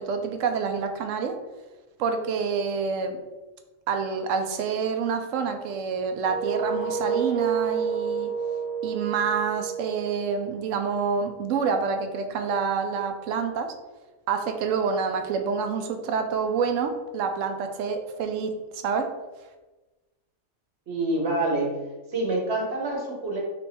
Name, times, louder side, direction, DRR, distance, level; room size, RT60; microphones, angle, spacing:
voice 1, 0.0-1.4 2.0-3.2 3.9-8.3 8.8-13.7 14.3-19.1, right 5 dB, 70° right, 6 dB, 0.9 m, -27 dB
sound 1, 6.2-11.0, right 6 dB, 15° left, 0.4 m, -30 dB
voice 2, 20.9-23.4, right 2 dB, 55° right, -1 dB, 1.2 m, -27 dB
3.4 x 3.1 x 4.1 m, 1.2 s
omnidirectional pair, 1.5 m